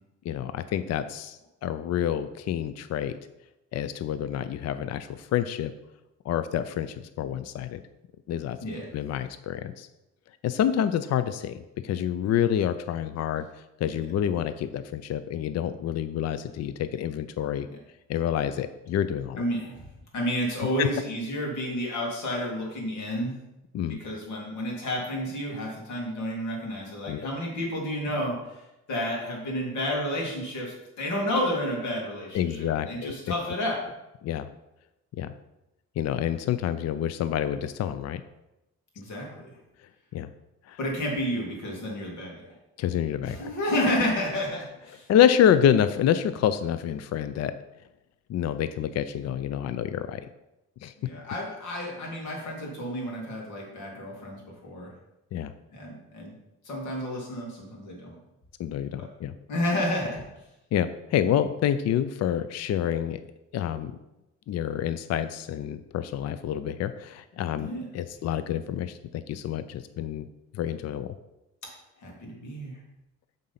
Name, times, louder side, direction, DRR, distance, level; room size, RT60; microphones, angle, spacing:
voice 1, 0.2-3.1 3.7-5.7 6.3-7.8 8.3-8.6 8.9-9.9 10.4-13.4 13.8-17.7 18.1-19.4 20.8-20.9 23.7-24.0 27.0-27.3 32.3-33.1 34.2-34.5 35.2-35.3 36.0-38.2 40.1-40.3 40.7-40.8 42.8-43.5 45.1-47.5 48.3-50.2 50.8-50.9 55.3-55.5 58.6-59.3 60.7-63.2 63.5-63.9 64.5-70.3 70.5-71.2, left 10 dB, 60° left, 12 dB, 0.5 m, -27 dB
voice 2, 19.4-23.3 23.9-28.6 28.9-33.8 39.0-39.5 40.8-42.5 43.2-45.1 51.0-54.9 55.7-56.3 56.6-58.2 59.0-59.1 59.5-60.3 67.5-67.8 72.0-72.8, equal, 80° left, -2 dB, 2.4 m, -31 dB
7.3 x 3.9 x 5.7 m, 0.94 s
cardioid pair, 90°, 30 cm